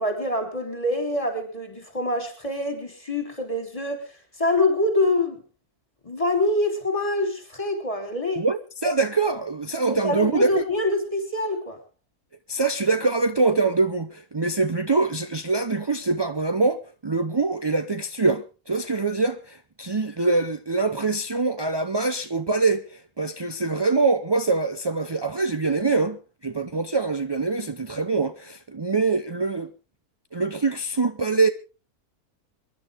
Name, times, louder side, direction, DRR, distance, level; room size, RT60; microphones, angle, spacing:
voice 1, 0.0-4.1 4.4-5.4 6.0-8.5 9.9-11.8, left 2 dB, 20° left, 3.6 m, -25 dB
voice 2, 8.4-10.6 12.5-29.7 30.3-31.5, right 3 dB, 35° right, 0.4 m, -24 dB
26.0 x 11.0 x 3.6 m
omnidirectional pair, 1.6 m